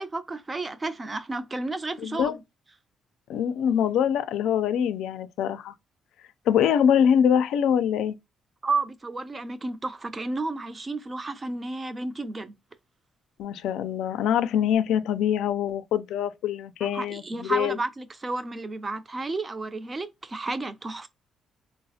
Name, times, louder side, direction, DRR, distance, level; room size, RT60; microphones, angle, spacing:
voice 1, 0.0-2.4 8.6-12.5 16.8-21.1, right 3 dB, 25° right, 0.5 m, -32 dB
voice 2, 2.0-2.4 3.3-5.7 6.5-8.2 13.4-17.8, left 8 dB, 85° left, 0.4 m, -24 dB
3.9 x 2.0 x 2.7 m
cardioid pair, 90°, 0 cm